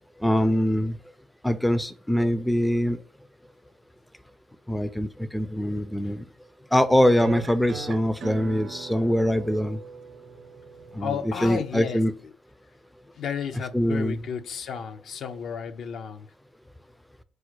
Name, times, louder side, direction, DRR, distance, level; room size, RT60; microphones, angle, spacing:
voice 1, 0.2-1.0 1.4-3.0 4.7-6.2 6.7-9.8 10.9-12.1 13.7-14.2, equal, 5° left, 0.3 m, -23 dB
sound 1, 7.2-12.2, right 5 dB, 65° right, 0.6 m, -40 dB
voice 2, 11.0-12.0 13.2-16.3, left 7 dB, 65° left, 0.4 m, -32 dB
4.7 x 2.1 x 4.5 m
cardioid pair, 90°, 0 cm